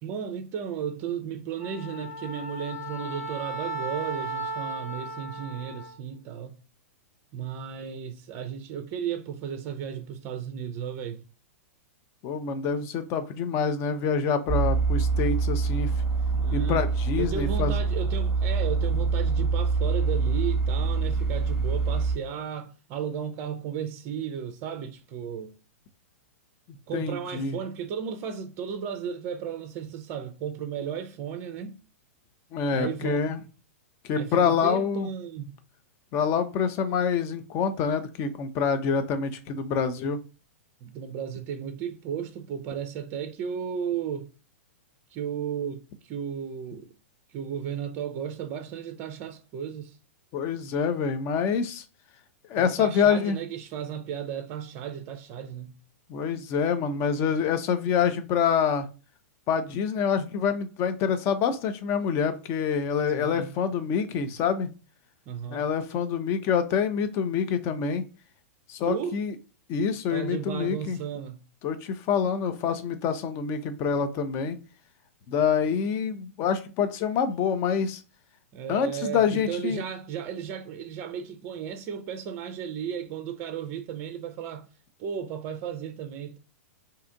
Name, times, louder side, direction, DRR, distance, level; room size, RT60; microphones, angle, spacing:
voice 1, 0.0-6.6 7.3-11.2 16.2-16.9 17.2-25.5 26.9-31.8 32.7-33.2 34.1-35.5 40.8-44.3 45.1-46.9 47.3-50.0 52.5-55.7 63.1-63.5 65.3-65.7 68.8-69.2 70.1-71.4 78.5-84.7 85.0-86.4, right 8 dB, 35° right, 0.4 m, -34 dB
Wind instrument woodwind instrument, 1.6-6.0, right 1 dB, 60° left, 1.1 m, -36 dB
voice 2, 12.2-15.9 16.5-17.8 26.9-27.6 32.5-33.4 34.1-35.1 36.1-40.2 50.3-51.8 52.5-53.4 56.1-58.9 59.5-64.7 65.5-68.1 68.7-69.3 69.7-71.0 71.6-74.6 75.3-78.0 78.7-79.8, left 6 dB, 35° left, 0.5 m, -26 dB
sound 1, 14.5-22.2, right 4 dB, 5° right, 0.8 m, -25 dB
2.7 x 2.4 x 3.8 m
figure-of-eight pair, 105°, 8 cm